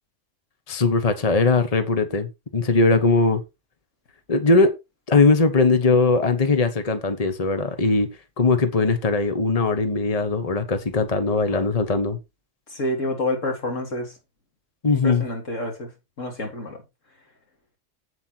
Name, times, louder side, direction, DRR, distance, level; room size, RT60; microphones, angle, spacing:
voice 1, 0.7-3.4 4.3-4.7 5.1-8.1 8.4-12.2 14.8-15.2, left 3 dB, 30° left, 1.3 m, -20 dB
voice 2, 12.7-14.1 14.9-15.9 16.2-16.8, left 1 dB, 80° left, 3.4 m, -28 dB
8.3 x 7.7 x 4.5 m
omnidirectional pair, 1.3 m